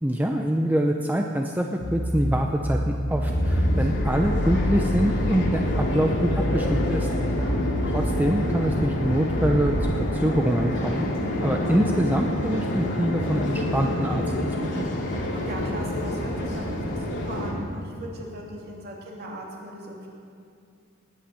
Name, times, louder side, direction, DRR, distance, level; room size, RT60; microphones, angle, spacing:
voice 1, 0.0-7.1 7.9-11.1 11.4-14.9, equal, 10° right, 2 dB, 0.6 m, -25 dB
sound 1, 1.8-9.8, equal, 80° left, 1.9 m, -28 dB
sound 2, 3.2-17.5, left 1 dB, 55° left, 2.4 m, -28 dB
voice 2, 15.2-20.1, right 1 dB, 45° right, -2 dB, 2.9 m, -38 dB
19.0 x 9.0 x 7.1 m, 2.4 s
head